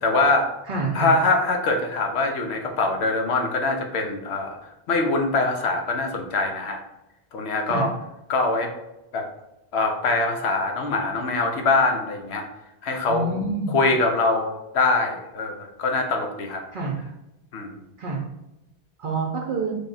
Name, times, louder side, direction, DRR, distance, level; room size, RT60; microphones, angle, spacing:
voice 1, 0.0-0.5 0.9-6.8 7.3-7.9 8.3-8.7 9.1-9.2 9.7-12.5 12.8-13.3 13.7-16.6 17.5-17.8, left 3 dB, 85° left, 4 dB, 0.9 m, -23 dB
voice 2, 0.7-1.1 7.7-7.9 13.1-13.8 16.7-17.0 18.0-18.2 19.0-19.8, right 3 dB, 55° right, -2 dB, 0.7 m, -27 dB
3.4 x 2.3 x 4.0 m, 0.93 s
omnidirectional pair, 1.1 m